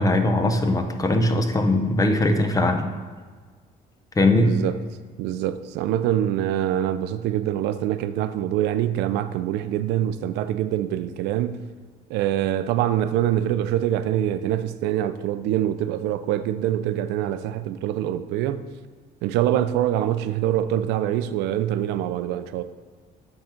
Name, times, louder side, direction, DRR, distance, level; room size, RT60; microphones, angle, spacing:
voice 1, 0.0-2.9 4.2-4.5, left 2 dB, 20° left, 0.7 m, -20 dB
voice 2, 4.3-4.8 5.2-11.6 12.1-18.7 19.2-22.6, right 11 dB, 90° right, 0.4 m, -24 dB
8.5 x 3.8 x 4.3 m
cardioid pair, 110°, 17 cm